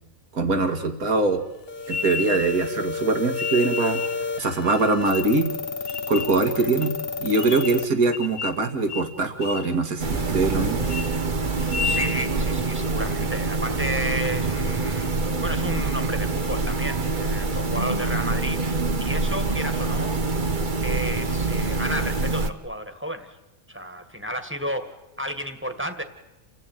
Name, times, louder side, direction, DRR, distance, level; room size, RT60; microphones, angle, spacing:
voice 1, 0.3-1.4 1.9-4.0 4.4-5.5 6.1-6.9 7.2-10.8, right 3 dB, 75° right, 6 dB, 2.5 m, -23 dB
sound 1, 1.7-7.9, left 4 dB, 45° left, 1.2 m, -31 dB
sound 2, 1.9-2.7 3.3-4.2 4.6-5.4 5.9-6.4 6.8-6.9 7.4-7.8 8.1-8.6 8.9-9.1 9.4-9.7 10.1-10.5 10.8-11.1 11.6-12.2, left 5 dB, 75° left, 2.1 m, -32 dB
sound 3, 10.0-22.5, right 3 dB, 35° right, 1.2 m, -25 dB
voice 2, 11.5-20.1 20.8-23.4 23.7-26.0, equal, 10° right, 8 dB, 1.9 m, -32 dB
29.0 x 15.0 x 9.3 m, 1.0 s
omnidirectional pair, 1.6 m